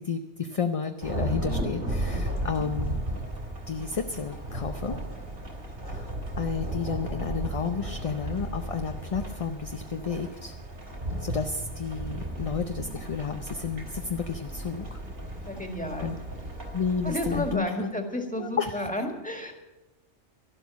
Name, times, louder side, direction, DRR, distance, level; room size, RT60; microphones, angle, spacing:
voice 1, 0.0-3.0 3.7-5.0 5.8-10.6 11.2-15.0 16.0-16.2 16.7-17.9 18.4-18.8, left 6 dB, 35° left, 6 dB, 0.6 m, -31 dB
Thunderstorm / Rain, 1.0-17.5, right 1 dB, 55° right, 3.3 m, -35 dB
voice 2, 15.5-16.1 17.0-19.5, left 1 dB, 5° left, 3 dB, 1.9 m, -32 dB
12.5 x 12.0 x 7.2 m, 1.0 s
omnidirectional pair, 1.2 m